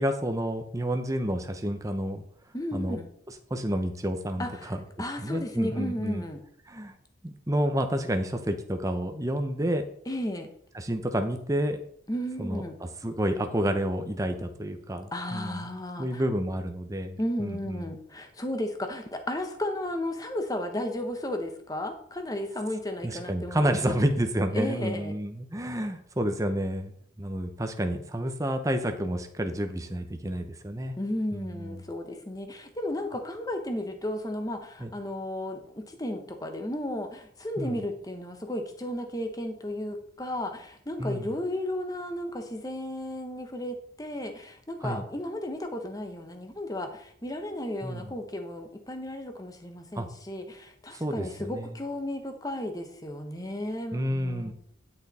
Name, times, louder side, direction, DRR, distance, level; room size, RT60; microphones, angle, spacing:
voice 1, 0.0-2.2 2.7-3.0 3.5-4.8 5.2-6.2 6.7-6.9 7.2-9.8 10.7-11.8 12.4-12.6 13.0-15.6 16.0-17.9 23.0-26.9 27.2-31.0 31.3-31.8 34.8-34.9 37.6-37.8 41.0-41.3 44.8-45.0 47.8-48.1 49.9-50.1 50.9-51.7 53.9-54.5, equal, 15° right, 6 dB, 0.8 m, -29 dB
voice 2, 2.5-3.1 4.4-6.4 10.1-10.5 12.1-12.8 15.1-16.2 17.2-23.9 24.5-25.1 31.0-54.5, left 1 dB, 20° left, 6 dB, 1.1 m, -34 dB
10.5 x 6.7 x 4.3 m, 0.67 s
head